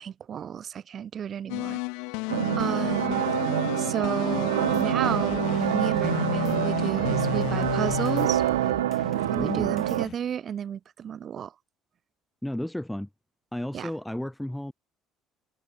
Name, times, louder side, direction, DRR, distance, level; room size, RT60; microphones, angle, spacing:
voice 1, 0.0-1.8 2.6-3.2 3.8-5.4 5.7-8.4 9.3-11.5 13.7-13.9, right 8 dB, 50° right, 1.1 m, -31 dB
sound 1, 1.5-9.7, left 32 dB, 75° left, 0.4 m, -32 dB
sound 2, 2.3-10.1, right 14 dB, 85° right, 0.6 m, -26 dB
sound 3, 4.3-10.2, left 9 dB, 50° left, 1.9 m, -42 dB
voice 2, 9.3-9.8 12.4-13.1 13.5-14.7, left 1 dB, 5° left, 3.2 m, -32 dB
hypercardioid pair, 60°, 0 cm